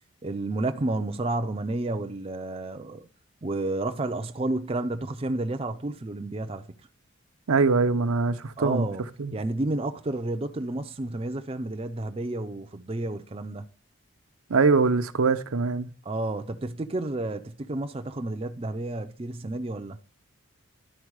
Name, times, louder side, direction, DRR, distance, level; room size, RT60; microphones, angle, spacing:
voice 1, 0.2-3.1 3.4-6.6 8.6-9.0 9.3-13.6 16.1-20.0, right 2 dB, 25° right, 0.4 m, -31 dB
voice 2, 7.5-8.9 9.2-9.4 14.5-15.9, right 4 dB, 85° right, 0.7 m, -23 dB
11.5 x 4.4 x 4.7 m
head